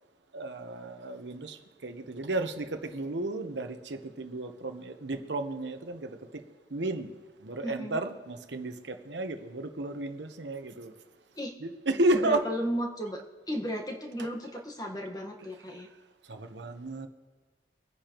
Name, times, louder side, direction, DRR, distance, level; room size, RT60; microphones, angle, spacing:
voice 1, 0.3-1.6 1.8-6.2 6.7-7.1 7.4-10.9 11.6-12.5 16.3-17.1, right 2 dB, 80° right, 1.0 m, -32 dB
voice 2, 7.6-8.0 11.3-11.5 12.1-13.2 13.5-15.9, equal, 20° left, 1.4 m, -34 dB
24.0 x 10.0 x 3.0 m
head